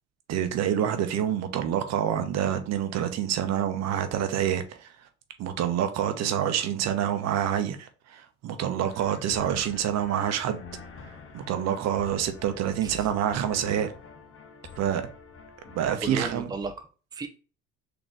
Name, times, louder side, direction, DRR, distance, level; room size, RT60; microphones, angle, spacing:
voice 1, 0.3-4.9 5.4-10.6 11.3-13.9 14.8-15.1 15.7-16.4, right 9 dB, 55° right, 0.8 m, -27 dB
sound 1, 8.9-15.9, left 4 dB, 40° left, 1.0 m, -47 dB
voice 2, 16.0-17.3, right 3 dB, 15° right, 0.6 m, -35 dB
3.9 x 2.9 x 3.5 m
supercardioid pair, 80°, 31 cm